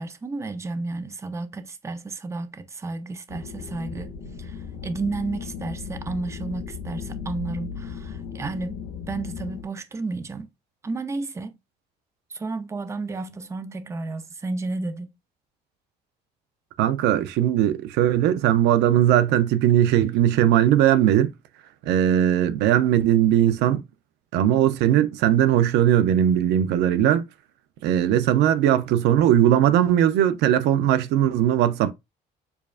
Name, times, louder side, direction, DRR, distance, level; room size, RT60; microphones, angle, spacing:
voice 1, 0.0-4.1 4.4-8.8 9.1-10.5 10.8-11.6 12.3-15.1, right 3 dB, 15° right, 0.5 m, -32 dB
sound 1, 3.3-9.6, left 6 dB, 80° left, 1.1 m, -36 dB
voice 2, 16.8-21.3 21.9-23.8 24.3-27.3 27.8-31.9, right 11 dB, 85° right, 0.5 m, -19 dB
6.9 x 2.4 x 2.4 m
cardioid pair, 110°, 17 cm